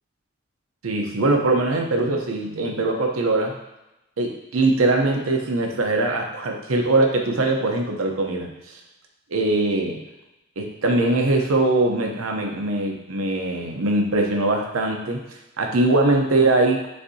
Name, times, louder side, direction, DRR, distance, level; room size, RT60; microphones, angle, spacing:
voice 1, 0.8-3.6 4.2-8.8 9.3-10.0 10.6-15.2 15.6-16.8, right 2 dB, 90° right, 1 dB, 0.7 m, -21 dB
6.5 x 2.7 x 2.7 m, 0.93 s
head